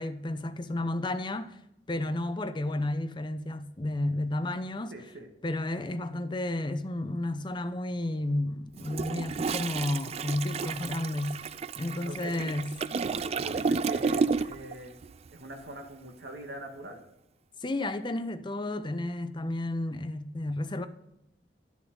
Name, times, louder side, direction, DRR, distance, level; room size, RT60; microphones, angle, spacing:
voice 1, 0.0-1.6 1.9-5.0 5.4-11.5 11.8-12.7 17.6-20.9, left 1 dB, 25° left, 0.6 m, -32 dB
voice 2, 4.9-5.3 12.1-12.5 13.2-14.9 15.3-17.0, right 1 dB, 80° right, 1.7 m, -42 dB
Toilet flush, 8.8-14.7 15.0-15.3, right 4 dB, 35° right, 0.3 m, -31 dB
11.0 x 7.3 x 3.9 m
head